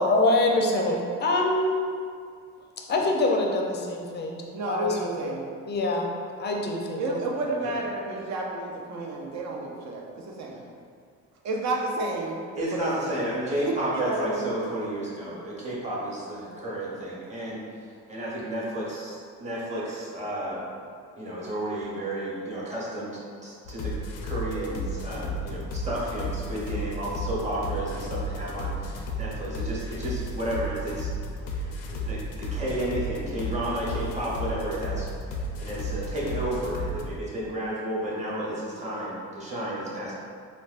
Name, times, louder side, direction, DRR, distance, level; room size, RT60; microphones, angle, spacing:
voice 1, 0.0-1.8 2.9-5.4 5.7-6.1 6.4-7.2, left 2 dB, 30° left, 1 dB, 0.5 m, -25 dB
voice 2, 4.5-5.4 7.0-10.6 11.4-12.4 12.7-13.2 13.7-14.5, right 2 dB, 55° right, 0 dB, 0.6 m, -31 dB
voice 3, 12.5-17.6 18.1-20.6 21.2-23.9 24.2-31.1 31.5-35.1 35.6-40.1, right 1 dB, 20° right, -6 dB, 1.0 m, -32 dB
sound 1, 23.6-37.1, equal, 85° left, 0.5 m, -33 dB
3.9 x 2.2 x 2.4 m, 2.2 s
supercardioid pair, 85°, 33 cm